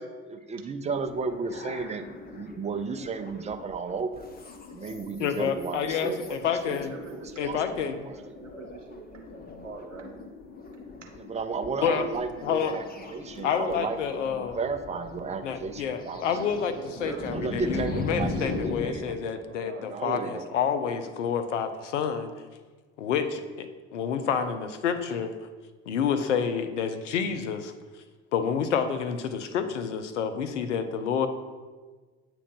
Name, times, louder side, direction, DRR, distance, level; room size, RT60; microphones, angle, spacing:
voice 1, 0.0-2.0 2.3-4.2 4.7-6.4 6.7-6.8 7.1-7.6 8.0-8.2 11.2-12.8 13.1-16.3 17.3-19.2 19.8-20.5, right 4 dB, 20° right, 8 dB, 0.5 m, -33 dB
sound 1, 0.8-18.9, left 3 dB, 25° left, 0.8 m, -39 dB
voice 2, 5.2-6.9 7.4-8.1 9.5-9.6 11.8-12.1 12.4-12.7 13.4-14.6 15.4-22.3 23.0-25.3 25.9-27.7 28.3-31.3, left 7 dB, 75° left, 9 dB, 0.6 m, -29 dB
voice 3, 6.9-10.1 11.0-11.1 16.3-16.5 17.0-17.8 18.3-18.5 19.3-21.0, right 4 dB, 90° right, 2 dB, 0.7 m, -44 dB
8.3 x 3.0 x 5.3 m, 1.4 s
figure-of-eight pair, 55°, 36 cm